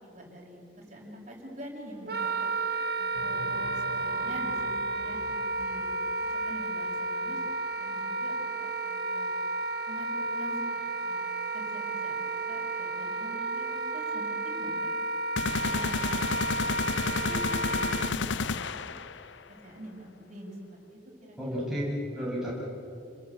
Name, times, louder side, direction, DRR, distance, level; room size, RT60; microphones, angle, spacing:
voice 1, 0.0-2.5 2.9-3.4 3.7-5.2 5.6-5.9 6.3-7.4 7.8-9.3 9.9-10.6 11.0-11.2 11.5-14.9 15.4-16.3 16.6-18.9 19.5-20.6 20.9-21.6, equal, 40° right, -1 dB, 6.4 m, -45 dB
Wind instrument woodwind instrument, 2.1-18.1, right 2 dB, 55° right, 1.2 m, -32 dB
sound 1, 3.1-7.5, right 2 dB, 75° right, 2.0 m, -45 dB
sound 2, 15.4-19.3, left 4 dB, 80° left, 0.7 m, -30 dB
voice 2, 21.4-22.5, equal, 5° right, -7 dB, 8.0 m, -32 dB
29.5 x 21.5 x 8.8 m, 2.7 s
head